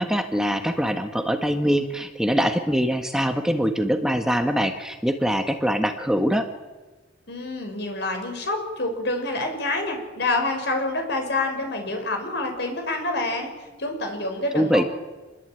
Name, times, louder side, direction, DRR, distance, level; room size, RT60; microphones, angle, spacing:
voice 1, 0.0-6.5 14.5-14.8, equal, 5° right, 6 dB, 1.6 m, -23 dB
voice 2, 7.3-13.5 13.8-14.9, left 2 dB, 65° left, 4 dB, 6.5 m, -27 dB
27.5 x 21.5 x 9.2 m, 1.2 s
head